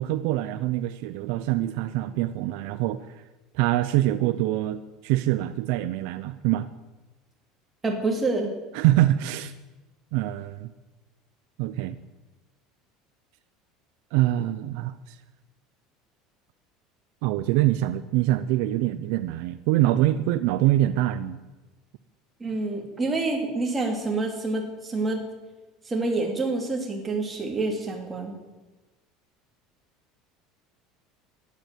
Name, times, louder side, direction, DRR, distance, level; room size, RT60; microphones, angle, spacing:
voice 1, 0.0-3.2 3.5-6.7 8.7-9.5 10.1-10.7 11.6-12.0 14.1-15.2 17.2-21.4, right 14 dB, 60° right, 12 dB, 0.6 m, -24 dB
voice 2, 7.8-8.5 22.4-25.2 25.9-28.3, right 3 dB, 10° right, 1 dB, 2.5 m, -27 dB
13.5 x 11.0 x 9.1 m, 1.1 s
cardioid pair, 175°, 0 cm